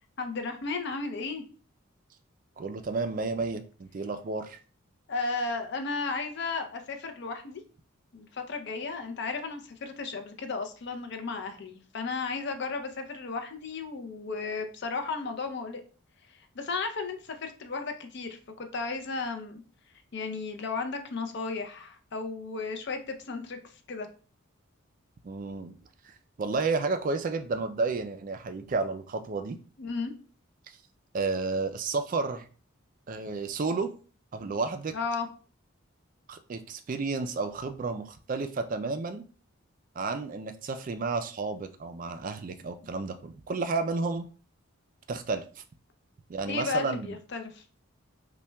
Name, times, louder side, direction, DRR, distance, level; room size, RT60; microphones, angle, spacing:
voice 1, 0.2-1.4 5.1-7.6 8.1-15.8 16.5-19.6 20.1-23.6 23.9-24.1 29.8-30.1 34.9-35.3 46.5-47.6, left 4 dB, 55° left, 6 dB, 0.5 m, -34 dB
voice 2, 2.6-4.6 25.2-25.8 26.0-26.1 26.4-29.6 31.1-32.5 33.1-33.9 34.3-35.0 36.3-39.2 40.0-44.3 45.1-45.4 46.3-47.2, right 4 dB, 40° right, 9 dB, 0.3 m, -31 dB
5.5 x 2.2 x 2.2 m, 0.39 s
head